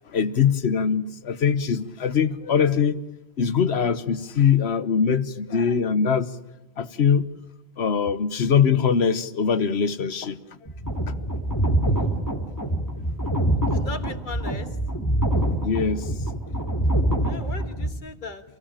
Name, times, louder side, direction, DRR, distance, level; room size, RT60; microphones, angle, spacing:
voice 1, 0.1-3.0 3.4-6.3 6.8-7.2 7.8-10.4 11.1-11.2 11.6-11.7 15.6-16.1, left 7 dB, 75° left, 1.4 m, -22 dB
sound 1, 10.7-17.9, right 1 dB, 15° left, 3.1 m, -25 dB
voice 2, 13.7-14.7 17.2-18.4, left 3 dB, 50° left, 1.7 m, -37 dB
28.5 x 16.5 x 8.9 m
omnidirectional pair, 1.1 m